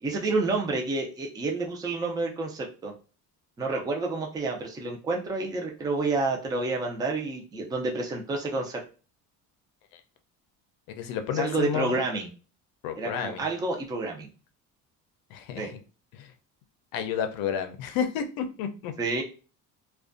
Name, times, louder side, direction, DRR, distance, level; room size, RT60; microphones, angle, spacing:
voice 1, 0.0-2.9 3.6-8.8 11.3-12.3 13.0-14.3 15.6-15.7 19.0-19.2, right 3 dB, 10° right, 1 dB, 0.3 m, -29 dB
voice 2, 10.9-12.0 12.8-13.4 15.3-15.8 16.1-16.3 16.9-18.9, left 8 dB, 90° left, 7 dB, 0.5 m, -31 dB
2.4 x 2.2 x 2.4 m, 0.35 s
cardioid pair, 145°, 34 cm